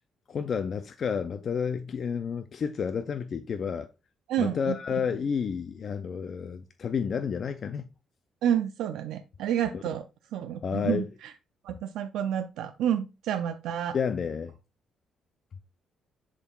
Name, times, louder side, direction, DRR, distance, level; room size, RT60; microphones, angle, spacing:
voice 1, 0.3-3.9 4.4-7.9 9.7-9.8 10.6-11.1 13.9-14.5, left 6 dB, 50° left, 0.4 m, -30 dB
voice 2, 4.3-4.8 8.4-10.0 10.3-11.3 11.6-14.0, right 10 dB, 85° right, 0.4 m, -29 dB
10.5 x 3.7 x 2.3 m
cardioid pair, 90°, 0 cm